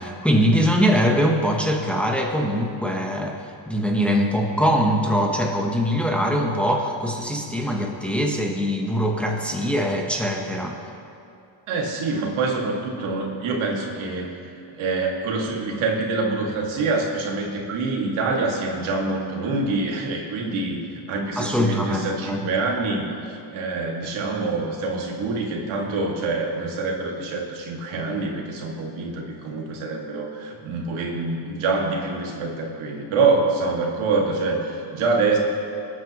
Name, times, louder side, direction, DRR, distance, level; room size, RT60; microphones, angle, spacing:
voice 1, 0.0-10.8 21.4-22.5, equal, ahead, 0 dB, 1.0 m, -22 dB
voice 2, 11.7-14.3 14.7-20.8 21.1-35.4, right 3 dB, 85° right, 0 dB, 2.1 m, -25 dB
24.0 x 9.4 x 3.0 m, 2.5 s
cardioid pair, 155°, 47 cm